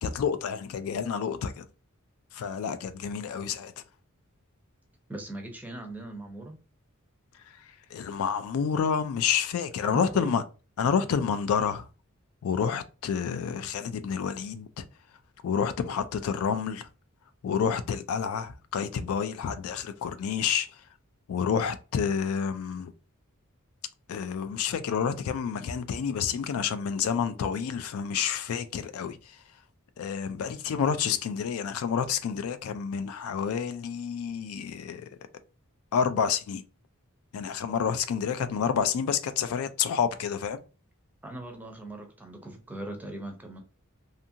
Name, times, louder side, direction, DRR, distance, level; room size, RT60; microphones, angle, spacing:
voice 1, 0.0-1.7 2.3-3.7 7.9-10.4 10.8-11.8 12.4-14.8 15.4-16.9 17.4-20.7 21.3-22.9 24.1-29.2 30.0-35.0 35.9-36.6 37.3-40.6, left 7 dB, 75° left, 0.3 m, -29 dB
voice 2, 5.1-6.5 9.8-10.4 41.2-43.6, right 1 dB, 10° right, 0.5 m, -39 dB
2.6 x 2.5 x 2.7 m
head